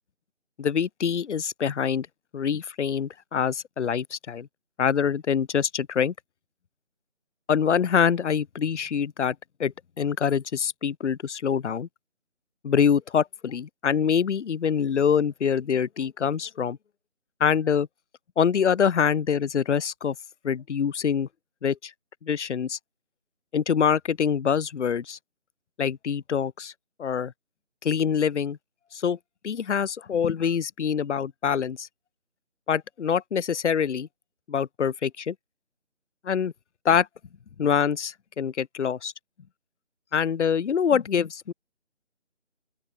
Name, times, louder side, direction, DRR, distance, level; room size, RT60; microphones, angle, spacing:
voice 1, 0.6-2.1 2.3-4.5 4.8-6.1 7.5-11.9 12.6-16.8 17.4-17.9 18.4-20.2 20.4-21.3 21.6-21.9 22.2-22.8 23.5-25.2 25.8-26.7 27.0-27.3 27.8-28.6 28.9-29.2 29.4-31.9 32.7-34.1 34.5-35.3 36.2-36.5 36.8-37.1 37.6-39.1 40.1-41.5, left 7 dB, 70° left, 0.6 m, -25 dB
open air
figure-of-eight pair, 160°, 37 cm